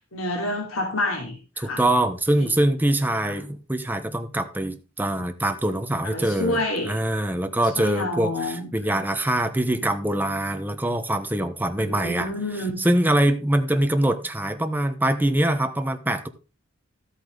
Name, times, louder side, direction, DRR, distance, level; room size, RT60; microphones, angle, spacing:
voice 1, 0.1-1.8 2.4-2.5 3.2-3.3 6.0-6.9 7.8-9.0 11.7-12.8, left 1 dB, 90° left, 2.9 m, -29 dB
voice 2, 1.6-12.3 12.6-16.3, right 1 dB, 10° right, 1.0 m, -24 dB
13.0 x 8.5 x 3.9 m
head